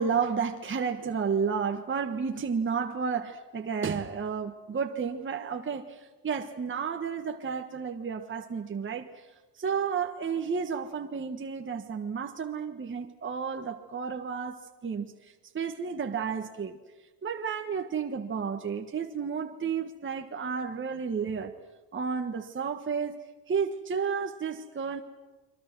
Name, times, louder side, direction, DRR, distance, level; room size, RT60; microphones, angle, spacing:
voice 1, 0.0-9.1 9.6-15.1 15.5-16.8 17.2-21.5 21.9-23.2 23.5-25.0, right 6 dB, 25° right, 1.6 m, -32 dB
30.0 x 23.0 x 6.1 m
cardioid pair, 105°, 43 cm